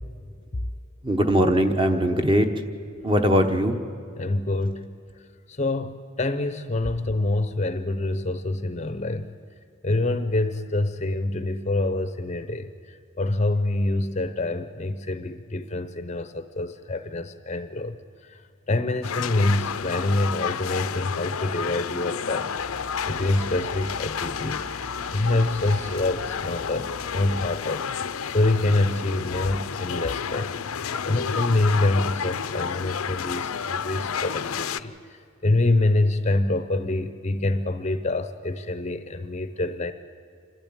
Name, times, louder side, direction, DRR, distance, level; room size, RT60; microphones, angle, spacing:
voice 1, 1.0-2.5 3.0-3.8, equal, 25° right, 6 dB, 1.0 m, -20 dB
voice 2, 4.2-4.9 5.5-9.3 9.8-18.0 18.3-18.4 18.7-22.8 23.1-24.6 25.1-27.8 28.3-30.5 31.1-39.9, left 2 dB, 30° left, 11 dB, 0.6 m, -26 dB
sound 1, 19.0-34.8, left 7 dB, 85° left, 0.6 m, -31 dB
sound 2, 22.6-27.6, equal, 60° right, 4.3 m, -43 dB
28.0 x 12.5 x 8.8 m, 2.4 s
head